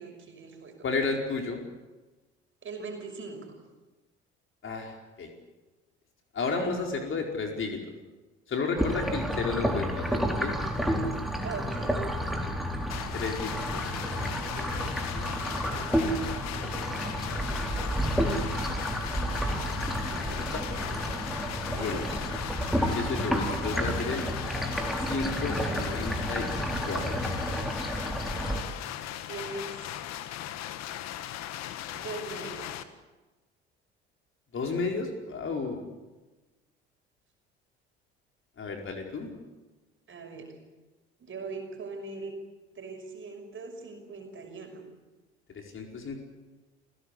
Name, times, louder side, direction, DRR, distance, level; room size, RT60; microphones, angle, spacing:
voice 1, 0.0-0.8 2.6-3.5 11.4-12.4 20.1-20.5 21.7-22.1 29.3-30.0 31.9-32.8 40.1-40.6 41.2-42.4 42.7-44.8, right 3 dB, 40° right, 3 dB, 5.9 m, -41 dB
voice 2, 0.8-1.6 4.6-5.3 6.3-7.8 8.5-10.6 13.1-13.9 14.2-15.3 15.7-16.2 16.5-17.0 17.5-17.6 20.5-20.6 21.8-22.0 22.8-24.2 25.0-26.5 26.9-27.2 34.5-35.8 38.6-39.3 45.5-46.2, left 4 dB, 40° left, 2 dB, 4.7 m, -33 dB
sound 1, 8.8-28.6, equal, ahead, 4.1 m, -30 dB
sound 2, 12.9-32.8, left 12 dB, 55° left, 1.5 m, -38 dB
28.5 x 16.5 x 8.4 m, 1.2 s
figure-of-eight pair, 55°, 32 cm